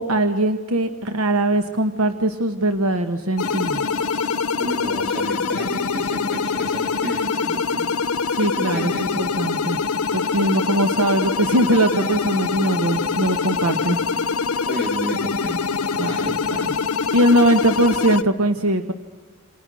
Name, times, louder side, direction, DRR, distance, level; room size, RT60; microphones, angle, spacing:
voice 1, 0.0-4.2 8.3-9.8 10.1-14.0 16.0-16.7 17.1-18.9, right 1 dB, 80° right, 8 dB, 1.3 m, -21 dB
sound 1, 3.4-18.2, left 5 dB, 80° left, 0.9 m, -24 dB
voice 2, 4.6-7.9 8.6-9.2 14.7-16.4, equal, 45° right, 4 dB, 3.4 m, -32 dB
28.0 x 27.0 x 6.3 m, 1.5 s
head